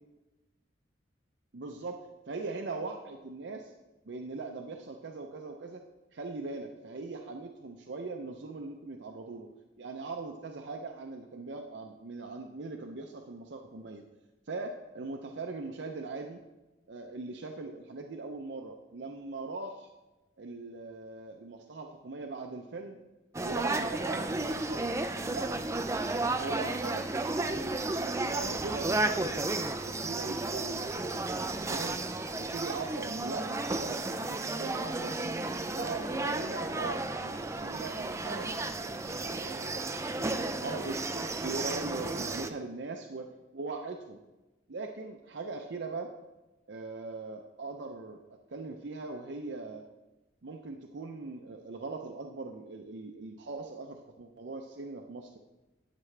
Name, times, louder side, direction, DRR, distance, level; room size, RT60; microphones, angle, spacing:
voice 1, 1.5-3.7 4.1-5.8 6.1-9.5 9.8-14.0 14.5-16.4 16.9-19.9 20.4-23.0 23.4-24.9 25.3-25.5 26.0-27.1 27.4-29.6 29.8-31.2 31.7-32.0 32.3-35.2 35.8-39.8 40.2-44.2 44.7-46.1 46.7-48.2 48.5-49.8 50.4-55.4, right 3 dB, 65° right, 3 dB, 0.6 m, -40 dB
sound 1, 23.3-42.5, right 2 dB, 15° right, 0.4 m, -33 dB
12.5 x 8.4 x 3.3 m, 1.1 s
head